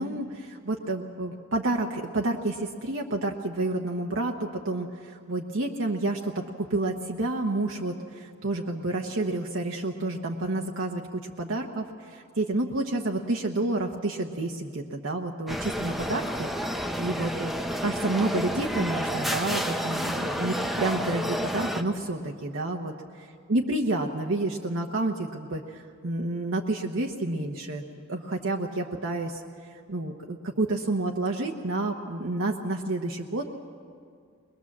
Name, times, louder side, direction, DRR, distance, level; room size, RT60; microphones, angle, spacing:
voice 1, 0.0-17.5 17.8-22.9 23.5-27.8 28.1-29.4 29.7-33.5, right 2 dB, 65° right, 1 dB, 1.0 m, -29 dB
sound 1, 15.5-21.8, equal, ahead, 0.8 m, -30 dB
21.5 x 21.5 x 7.3 m, 2.2 s
head